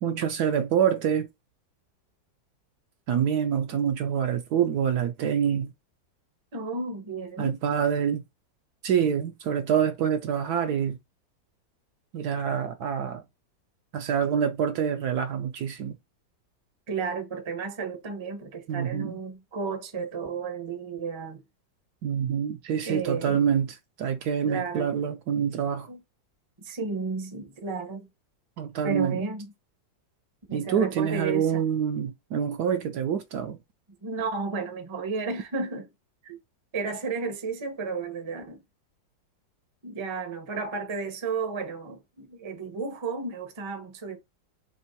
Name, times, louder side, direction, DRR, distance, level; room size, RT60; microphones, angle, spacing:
voice 1, 0.0-1.3 3.1-5.7 7.4-8.2 8.8-11.0 12.1-13.2 13.9-16.0 18.7-19.2 22.0-25.9 28.6-29.2 30.5-33.6, right 8 dB, 70° right, 1.0 m, -26 dB
voice 2, 6.5-7.6 16.9-21.4 22.9-23.4 24.4-24.9 25.9-26.0 26.6-28.1 28.8-29.5 30.5-31.6 34.0-35.9 36.2-36.4 36.7-38.6 39.8-44.2, right 4 dB, 25° right, 0.6 m, -33 dB
3.5 x 3.0 x 4.3 m
omnidirectional pair, 2.0 m